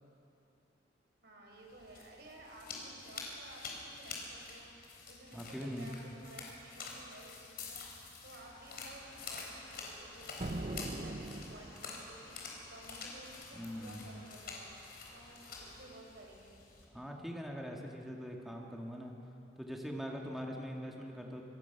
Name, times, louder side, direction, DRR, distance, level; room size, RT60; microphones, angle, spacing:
voice 1, 1.2-12.4 12.7-14.7 15.1-16.6, right 1 dB, 60° right, 0 dB, 4.6 m, -55 dB
sound 1, 1.6-16.8, left 4 dB, 55° left, 4.0 m, -48 dB
voice 2, 5.3-5.9 13.5-14.1 16.9-19.1 19.6-21.4, equal, ahead, 0 dB, 2.0 m, -42 dB
sound 2, 8.4-15.9, left 1 dB, 25° left, 4.9 m, -59 dB
sound 3, 10.4-12.1, right 1 dB, 35° right, 0.8 m, -41 dB
25.5 x 20.0 x 6.0 m, 2.8 s
head